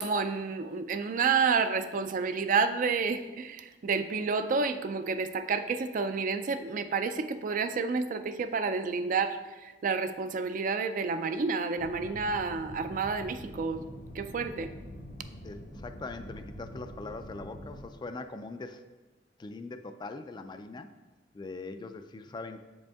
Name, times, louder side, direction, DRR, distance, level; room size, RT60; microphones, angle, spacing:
voice 1, 0.0-13.9 14.1-14.7, right 5 dB, 50° right, 10 dB, 0.4 m, -30 dB
sound 1, 11.8-17.9, equal, 85° left, 1.0 m, -45 dB
voice 2, 15.4-18.8 19.4-20.9 21.3-22.6, left 3 dB, 25° left, 8 dB, 0.3 m, -41 dB
6.9 x 5.1 x 3.5 m, 1.2 s
head